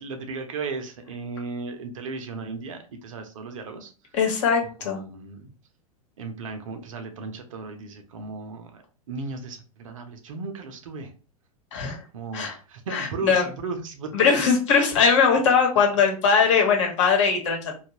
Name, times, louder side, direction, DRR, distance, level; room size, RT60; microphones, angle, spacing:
voice 1, 0.0-3.9 4.8-5.5 6.2-8.8 9.1-11.1 12.1-14.1, right 4 dB, 55° right, 6 dB, 0.7 m, -35 dB
voice 2, 4.1-5.0 11.7-12.0 12.3-12.5 12.9-13.5 14.1-17.8, left 6 dB, 50° left, 1 dB, 1.1 m, -20 dB
2.8 x 2.3 x 2.8 m, 0.35 s
figure-of-eight pair, 95°, 19 cm